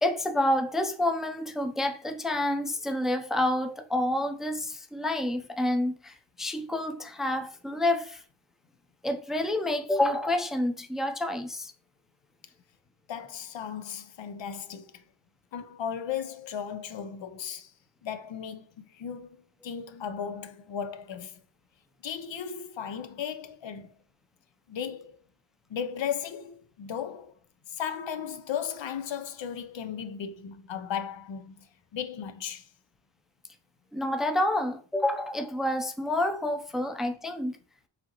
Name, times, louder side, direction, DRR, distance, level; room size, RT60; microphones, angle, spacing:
voice 1, 0.0-8.2 9.0-11.7 33.9-37.6, left 1 dB, ahead, 0.4 m, -28 dB
voice 2, 13.1-15.0 15.5-17.7 18.0-19.3 19.6-21.4 22.0-23.9 24.7-25.2 25.7-27.3 27.7-31.7 31.9-32.7, left 8 dB, 70° left, 0.5 m, -36 dB
4.9 x 2.8 x 2.9 m
cardioid pair, 50°, 47 cm